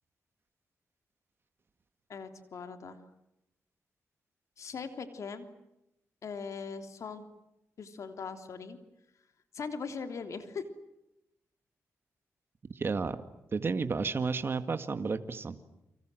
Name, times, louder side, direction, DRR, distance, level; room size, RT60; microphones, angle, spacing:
voice 1, 2.1-3.0 4.6-5.5 6.2-7.2 7.8-8.8 9.5-10.6, left 5 dB, 65° left, 8 dB, 3.3 m, -40 dB
voice 2, 12.7-13.2 13.5-15.6, right 4 dB, 45° right, 9 dB, 2.0 m, -32 dB
30.0 x 25.5 x 7.7 m, 0.86 s
cardioid pair, 85°, 6 cm